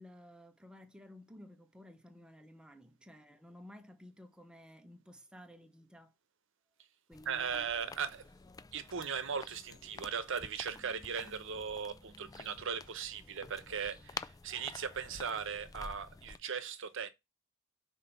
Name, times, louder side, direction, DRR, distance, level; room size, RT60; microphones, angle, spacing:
voice 1, 0.0-6.1 7.1-7.7, left 1 dB, 5° right, 0.9 m, -54 dB
sound 1, 7.1-16.4, left 4 dB, 15° left, 0.3 m, -50 dB
voice 2, 7.3-8.2 8.7-17.1, right 6 dB, 65° right, 0.9 m, -38 dB
5.9 x 4.5 x 5.6 m
head